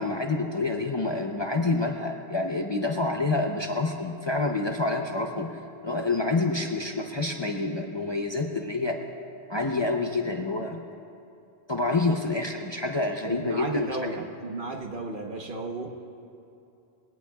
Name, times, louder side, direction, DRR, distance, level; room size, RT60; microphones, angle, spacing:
voice 1, 0.0-9.0 9.5-10.8 11.7-14.1, left 3 dB, 30° left, 2 dB, 0.7 m, -28 dB
voice 2, 13.3-15.9, right 3 dB, 55° right, 2 dB, 1.3 m, -33 dB
22.0 x 17.0 x 2.4 m, 2.7 s
omnidirectional pair, 1.1 m